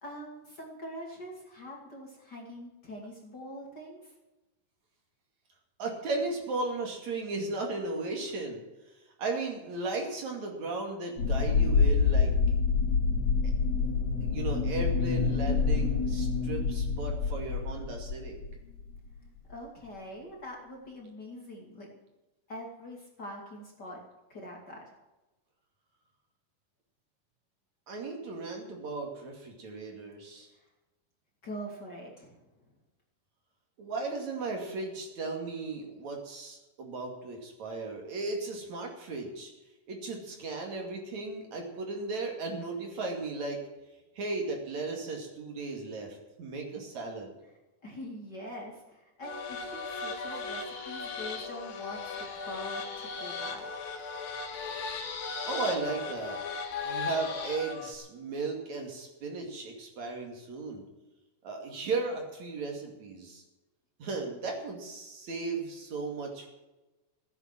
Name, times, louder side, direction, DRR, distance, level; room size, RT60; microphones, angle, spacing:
voice 1, 0.0-4.1 19.5-21.9 22.5-24.0 24.3-24.8 31.4-32.4 47.8-53.7, left 1 dB, 30° left, -1 dB, 2.7 m, -43 dB
voice 2, 5.8-8.6 9.2-12.3 14.2-18.4 27.9-30.5 33.8-39.5 39.9-43.6 44.1-47.3 55.4-56.4 56.8-60.8 61.4-63.4 64.0-66.5, right 3 dB, 55° right, 1 dB, 3.6 m, -36 dB
sound 1, 11.2-18.5 18.8-18.9 19.5-19.6, left 5 dB, 60° left, 4.6 m, -27 dB
sound 2, 49.2-57.9, left 4 dB, 85° left, 4.0 m, -37 dB
15.0 x 9.7 x 7.5 m, 1.1 s
omnidirectional pair, 4.0 m